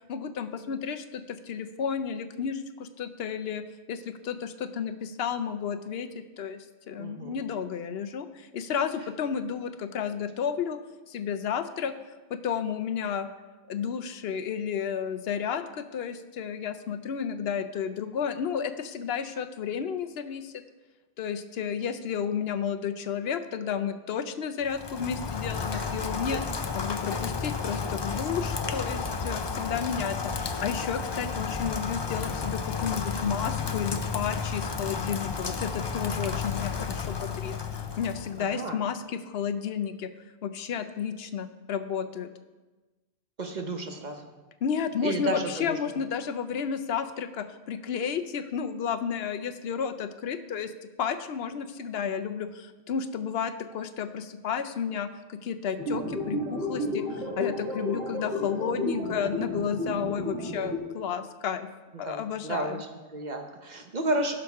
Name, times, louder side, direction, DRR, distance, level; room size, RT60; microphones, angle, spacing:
voice 1, 0.1-3.6 3.9-10.8 11.1-11.9 12.3-13.3 13.7-20.6 21.2-26.4 26.7-40.1 40.4-42.3 44.6-50.7 51.0-61.7 62.0-62.8, left 7 dB, 75° left, 10 dB, 0.8 m, -32 dB
voice 2, 7.0-7.4 25.7-25.9 26.3-26.4 38.4-38.8 43.4-44.3 45.0-45.8 62.0-64.3, right 2 dB, 45° right, 4 dB, 1.0 m, -32 dB
Rain, 24.6-38.5, left 5 dB, 35° left, 0.4 m, -32 dB
sound 1, 55.8-60.8, left 1 dB, 75° right, 2.0 m, -32 dB
16.0 x 6.0 x 3.5 m, 1.2 s
omnidirectional pair, 1.1 m